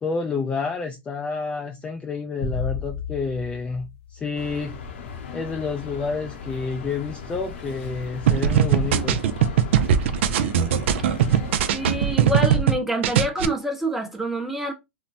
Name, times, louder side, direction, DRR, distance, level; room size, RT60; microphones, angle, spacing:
voice 1, 0.0-4.8 5.3-9.2, left 4 dB, 15° left, 0.3 m, -29 dB
sound 1, 2.4-4.9, left 6 dB, 50° left, 0.9 m, -33 dB
sound 2, 4.3-12.2, left 4 dB, 75° left, 0.7 m, -37 dB
sound 3, 8.3-12.8 13.0-13.5, right 9 dB, 70° right, 0.3 m, -20 dB
voice 2, 11.7-14.7, right 1 dB, 5° right, 0.7 m, -26 dB
2.9 x 2.1 x 2.5 m
hypercardioid pair, 120°, 7 cm